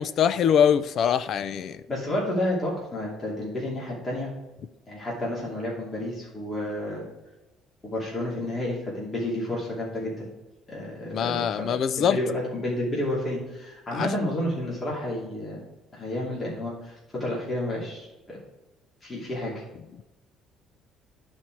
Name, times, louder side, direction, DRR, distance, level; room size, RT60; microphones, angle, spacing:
voice 1, 0.0-1.8 11.1-12.2 13.9-14.1, left 8 dB, 50° left, 0.4 m, -23 dB
voice 2, 1.9-4.3 4.9-7.0 7.9-10.2 10.7-11.6 12.0-15.6 15.9-18.4 19.0-19.5, left 1 dB, 25° left, 2.7 m, -30 dB
12.0 x 4.4 x 4.6 m
cardioid pair, 145°, 0 cm